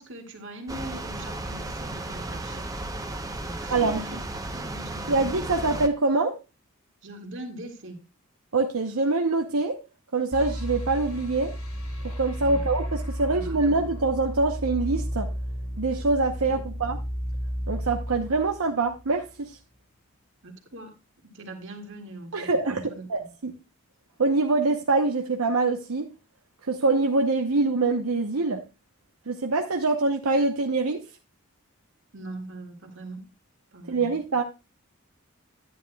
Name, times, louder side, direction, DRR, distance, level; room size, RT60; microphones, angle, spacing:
voice 1, 0.0-2.7 3.4-5.3 7.0-8.0 12.4-12.6 13.2-14.0 16.4-16.6 20.4-20.9 21.2-23.3 32.1-33.2 33.7-34.2, right 1 dB, 55° right, 2.0 m, -42 dB
sound 1, 0.7-5.9, right 2 dB, 15° right, 0.8 m, -34 dB
voice 2, 3.7-4.1 5.1-6.3 8.5-9.8 10.1-11.5 12.0-15.3 15.8-17.0 17.7-19.6 22.3-22.8 23.1-23.5 24.2-26.1 26.6-28.6 29.3-31.0 33.9-34.4, right 3 dB, 80° right, 0.9 m, -24 dB
sound 2, 10.3-19.4, equal, 75° left, 4.0 m, -33 dB
11.0 x 10.0 x 2.3 m
head